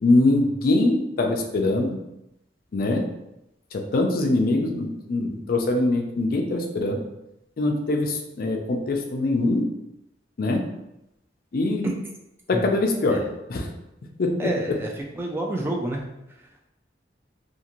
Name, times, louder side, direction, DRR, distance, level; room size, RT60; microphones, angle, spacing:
voice 1, 0.0-2.0 2.7-3.1 3.7-7.0 7.6-9.7 10.4-10.7 11.5-11.9 12.5-13.2 13.5-13.7 14.2-14.5, left 2 dB, 55° left, 3 dB, 0.4 m, -23 dB
voice 2, 14.4-14.9 15.2-16.0, right 1 dB, 15° right, 0 dB, 0.3 m, -28 dB
2.5 x 2.5 x 2.9 m, 0.88 s
head